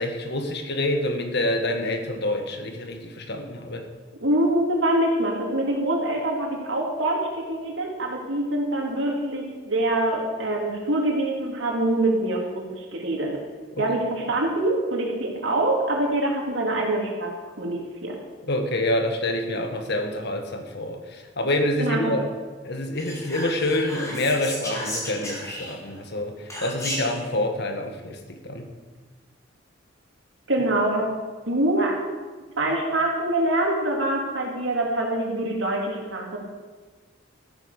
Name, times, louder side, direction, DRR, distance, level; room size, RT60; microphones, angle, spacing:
voice 1, 0.0-3.9 13.7-13.8 18.4-22.2 22.6-28.7, left 1 dB, 60° left, 5 dB, 1.7 m, -27 dB
voice 2, 4.2-13.4 13.8-18.2 21.8-22.1 30.5-31.1 31.5-32.0 32.6-36.4, right 1 dB, 70° right, 0 dB, 3.2 m, -25 dB
Whispering, 23.0-26.0 26.5-27.2, equal, 15° left, 3.8 m, -34 dB
14.0 x 9.5 x 6.7 m, 1.4 s
head